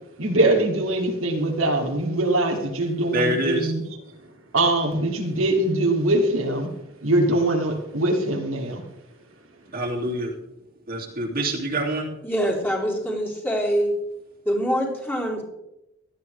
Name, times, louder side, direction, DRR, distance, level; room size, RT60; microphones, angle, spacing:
voice 1, 0.2-3.8 4.5-6.7 7.0-8.8, right 1 dB, 85° right, 1 dB, 2.8 m, -22 dB
voice 2, 3.1-3.7 9.7-10.4 10.9-12.1, right 1 dB, 45° right, -1 dB, 2.8 m, -26 dB
voice 3, 12.2-13.9 14.5-15.4, equal, 10° left, -4 dB, 4.1 m, -24 dB
17.5 x 13.0 x 3.5 m, 0.91 s
head